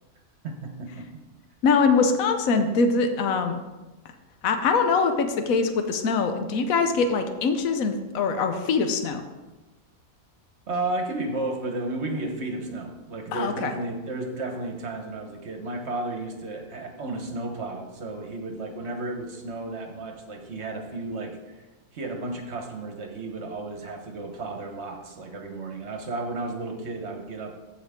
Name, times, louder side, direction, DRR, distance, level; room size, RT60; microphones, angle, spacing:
voice 1, 0.4-1.1 10.7-21.6 21.9-27.5, right 2 dB, 55° right, 4 dB, 1.4 m, -33 dB
voice 2, 1.6-3.6 4.4-9.2 13.3-13.7, left 4 dB, 80° left, 7 dB, 1.2 m, -23 dB
14.5 x 4.9 x 3.6 m, 1.1 s
omnidirectional pair, 1.4 m